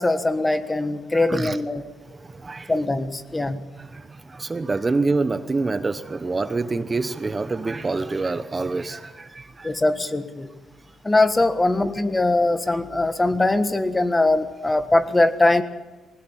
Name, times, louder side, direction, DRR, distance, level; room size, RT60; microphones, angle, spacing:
voice 1, 0.0-1.9 2.7-3.7 9.6-10.5 11.0-15.6, left 2 dB, 20° left, 11 dB, 1.5 m, -21 dB
voice 2, 1.1-1.6 2.1-2.7 3.8-9.7, right 3 dB, 25° right, 12 dB, 0.9 m, -26 dB
21.0 x 19.0 x 7.3 m, 1.2 s
cardioid pair, 90°, 0 cm